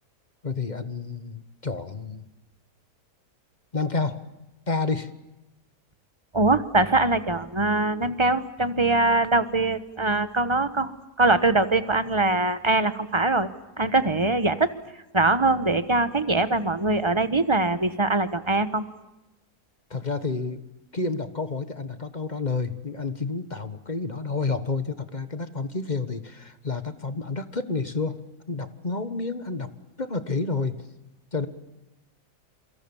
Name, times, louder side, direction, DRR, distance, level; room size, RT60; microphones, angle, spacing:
voice 1, 0.4-2.3 3.7-4.2 4.7-5.1 19.9-20.6 20.9-28.2 28.5-29.7 30.0-30.9 31.3-31.5, left 3 dB, 30° left, 11 dB, 1.3 m, -29 dB
voice 2, 6.3-10.9 11.2-13.5 13.8-14.7 15.1-18.8, right 2 dB, 20° right, 12 dB, 1.2 m, -22 dB
28.0 x 24.5 x 7.2 m, 1.0 s
omnidirectional pair, 1.7 m